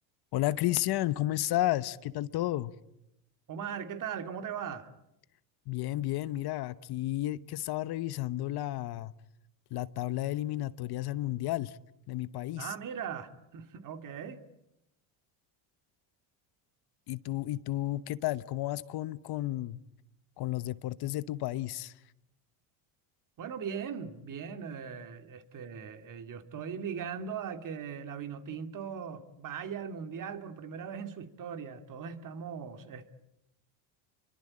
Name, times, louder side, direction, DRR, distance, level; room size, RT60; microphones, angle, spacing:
voice 1, 0.3-2.7 5.7-9.1 9.7-11.8 12.1-12.7 17.1-19.8 20.4-21.9, left 15 dB, 55° left, 1.0 m, -32 dB
voice 2, 3.5-4.9 12.6-14.4 23.4-33.1, right 7 dB, 40° right, 2.5 m, -39 dB
29.0 x 23.5 x 8.7 m
cardioid pair, 130°, 47 cm